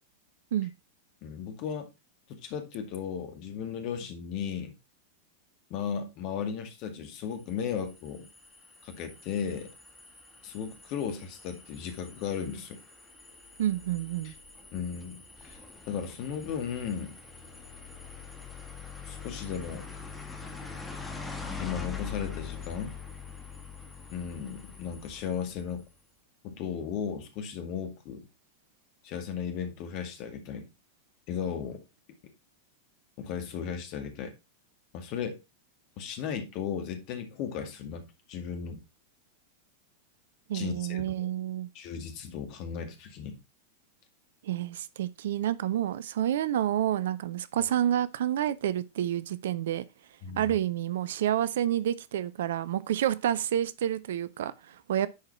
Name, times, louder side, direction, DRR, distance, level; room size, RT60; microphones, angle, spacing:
voice 1, 1.2-1.9 2.3-4.7 5.7-8.3 8.8-9.7 10.4-12.8 14.2-14.3 14.7-15.6 15.9-17.2 19.1-19.8 21.6-22.9 24.1-25.8 26.4-28.3 29.0-30.7 31.3-31.8 33.2-34.3 34.9-35.4 36.0-38.8 40.5-41.1 41.7-43.4 50.2-50.6, left 7 dB, 40° left, 2.1 m, -35 dB
sound 1, 7.3-25.8, left 5 dB, 10° left, 1.7 m, -44 dB
voice 2, 13.6-14.3 40.5-41.7 44.4-49.9 50.4-55.1, right 11 dB, 60° right, 0.6 m, -29 dB
10.5 x 4.8 x 4.2 m
figure-of-eight pair, 90°, 0 cm